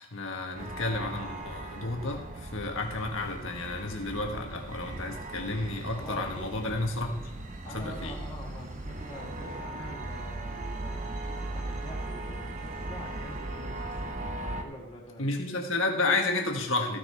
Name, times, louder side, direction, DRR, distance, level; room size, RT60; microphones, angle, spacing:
voice 1, 0.0-7.3 7.6-8.1 15.2-17.0, left 2 dB, 65° left, 2 dB, 1.6 m, -31 dB
sound 1, 0.6-14.6, right 2 dB, 35° right, 1.0 m, -38 dB
voice 2, 6.0-6.5 7.6-14.1 14.4-15.3, equal, 25° left, -2 dB, 2.2 m, -45 dB
15.0 x 6.7 x 4.4 m, 0.96 s
head